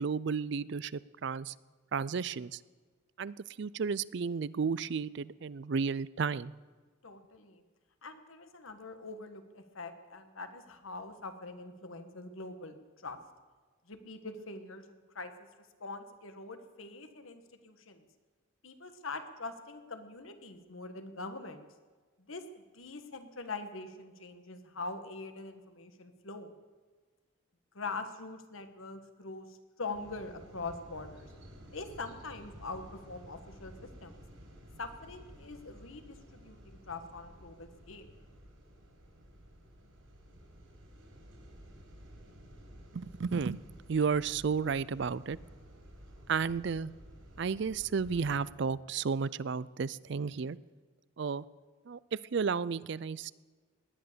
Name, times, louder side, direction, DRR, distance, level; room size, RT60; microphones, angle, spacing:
voice 1, 0.0-1.5 1.9-2.6 3.2-6.5 42.9-43.6 43.9-45.4 46.3-46.9 47.4-50.6 51.2-51.4 51.9-53.3, right 5 dB, 55° right, 20 dB, 0.4 m, -33 dB
voice 2, 7.0-7.6 8.0-13.2 13.9-15.3 15.8-18.1 18.6-21.7 22.2-26.5 27.7-31.3 31.7-34.2 34.8-38.1, left 3 dB, 80° left, 8 dB, 1.5 m, -43 dB
sound 1, 29.9-48.5, equal, 75° right, 4.8 m, -53 dB
18.5 x 11.0 x 6.8 m, 1.4 s
head